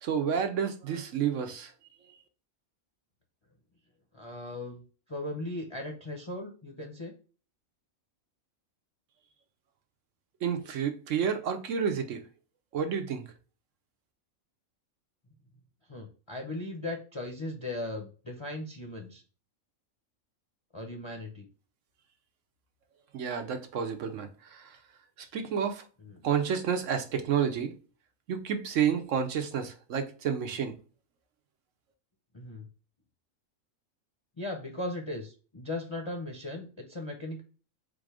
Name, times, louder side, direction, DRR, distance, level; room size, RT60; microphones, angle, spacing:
voice 1, 0.0-1.7 10.4-12.3 12.7-13.2 23.1-24.8 25.3-25.8 26.2-27.7 28.3-30.7, right 7 dB, 65° right, 1.1 m, -30 dB
voice 2, 4.1-4.8 5.1-7.1 15.9-19.2 20.7-21.5 26.0-26.2 32.3-32.7 34.4-37.4, left 2 dB, 25° left, 0.6 m, -38 dB
4.4 x 2.5 x 4.7 m
omnidirectional pair, 1.4 m